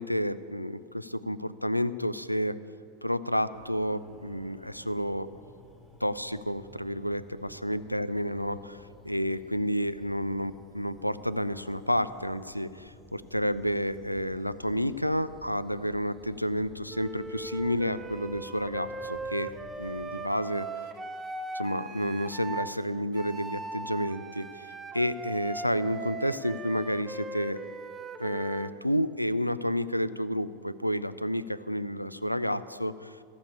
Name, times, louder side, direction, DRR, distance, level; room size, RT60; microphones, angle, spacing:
voice 1, 0.0-2.6 3.0-5.3 6.0-19.5 19.8-20.7 21.5-27.6 28.2-33.2, equal, 90° left, 16 dB, 0.4 m, -30 dB
sound 1, 3.5-20.2, equal, 5° left, 1.6 m, -54 dB
Wind instrument woodwind instrument, 16.9-22.7 23.1-28.8, right 3 dB, 15° right, 0.7 m, -39 dB
15.5 x 7.1 x 8.6 m, 2.2 s
figure-of-eight pair, 90°, 0 cm